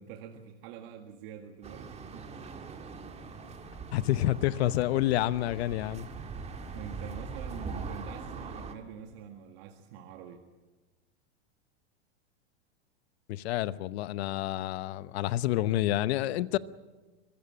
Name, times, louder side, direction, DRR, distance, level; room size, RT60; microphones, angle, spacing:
voice 1, 0.0-2.3 6.7-10.4, right 8 dB, 60° right, 1.9 m, -46 dB
sound 1, 1.6-8.7, right 4 dB, 20° right, 2.0 m, -42 dB
voice 2, 3.9-6.1 13.3-16.6, left 14 dB, 65° left, 0.9 m, -28 dB
24.0 x 15.5 x 8.7 m
supercardioid pair, 130°, 34 cm